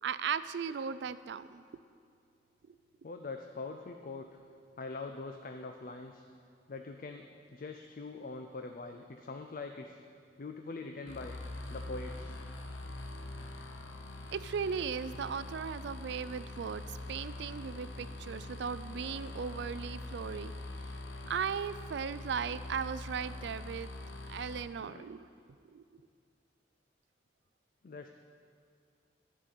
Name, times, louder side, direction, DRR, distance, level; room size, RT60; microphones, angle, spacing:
voice 1, 0.0-1.6 2.7-2.8 14.3-20.5 21.3-23.9 24.3-25.3 25.7-25.8, right 6 dB, 65° right, 14 dB, 0.3 m, -37 dB
voice 2, 3.0-4.3 4.8-6.2 6.7-10.0 10.4-11.4 11.7-12.4 24.8-25.0 27.8-28.1, left 3 dB, 45° left, 5 dB, 0.4 m, -43 dB
sound 1, 11.1-24.6, left 2 dB, 90° left, 0.9 m, -44 dB
10.5 x 5.6 x 8.2 m, 2.3 s
head